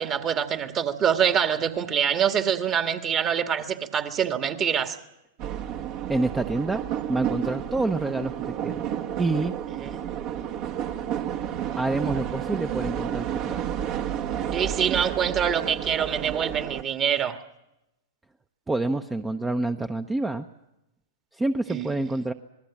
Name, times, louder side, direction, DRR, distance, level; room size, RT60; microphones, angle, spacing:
voice 1, 0.0-5.0 9.8-10.0 14.5-17.4 21.7-21.9, right 8 dB, 30° right, 7 dB, 1.9 m, -25 dB
sound 1, 5.4-16.8, right 10 dB, 50° right, 1.8 m, -31 dB
voice 2, 6.1-6.8 7.1-8.3 8.6-8.8 9.2-9.5 11.8-13.6 18.7-20.5 21.3-22.3, right 2 dB, 10° right, 8 dB, 0.9 m, -27 dB
26.5 x 20.5 x 7.4 m, 0.93 s
hypercardioid pair, 105°, 0 cm